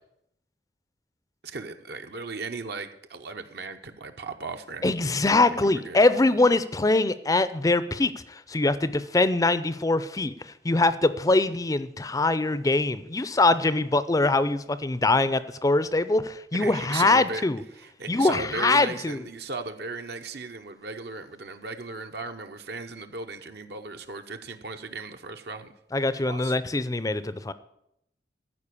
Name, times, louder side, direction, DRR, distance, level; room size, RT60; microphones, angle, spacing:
voice 1, 1.4-5.2 5.5-6.0 16.5-17.4 17.7-25.7 26.1-26.5, right 3 dB, 60° right, 6 dB, 0.9 m, -37 dB
voice 2, 4.8-17.6 18.1-19.2 25.9-27.5, left 2 dB, 20° left, 15 dB, 0.5 m, -23 dB
14.0 x 5.1 x 8.4 m, 0.79 s
head